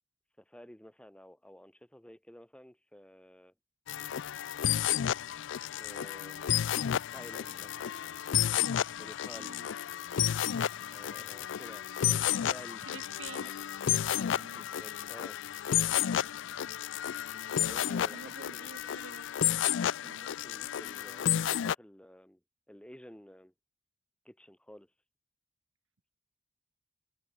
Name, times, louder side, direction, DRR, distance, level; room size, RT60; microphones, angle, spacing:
voice 1, 0.4-3.5 5.8-8.1 8.9-9.6 10.9-12.9 13.4-13.6 14.2-15.4 17.5-18.9 20.0-22.4 22.7-23.5 24.2-24.9, equal, 5° left, 1.3 m, -52 dB
sound 1, 3.9-21.7, left 10 dB, 70° left, 0.4 m, -32 dB
voice 2, 9.3-9.7 12.9-13.5 14.3-14.7 18.1-19.3 20.0-20.3, right 5 dB, 75° right, 0.8 m, -49 dB
head